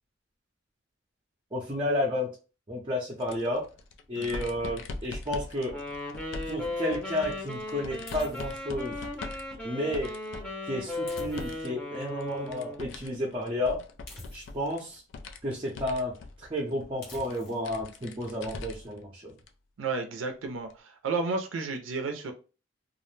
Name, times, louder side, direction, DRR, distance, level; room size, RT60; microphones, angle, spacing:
voice 1, 1.5-2.3 2.7-3.7 4.1-5.8 6.5-9.0 9.6-10.1 10.7-13.8 14.3-15.0 15.4-19.3, left 1 dB, 25° right, -3 dB, 0.5 m, -31 dB
sound 1, 3.2-11.7 12.0-19.0 19.4-19.5 20.7-20.8, left 3 dB, 75° left, 0.3 m, -42 dB
voice 2, 4.2-4.5 19.8-22.3, right 4 dB, 85° right, 5 dB, 0.4 m, -32 dB
Wind instrument woodwind instrument, 5.7-12.9, left 2 dB, 5° left, 0.7 m, -37 dB
sound 2, 8.1-8.7 11.1-11.8 14.1-14.8 17.0-17.7, left 1 dB, 50° left, 1.0 m, -47 dB
2.4 x 2.0 x 3.1 m, 0.34 s
head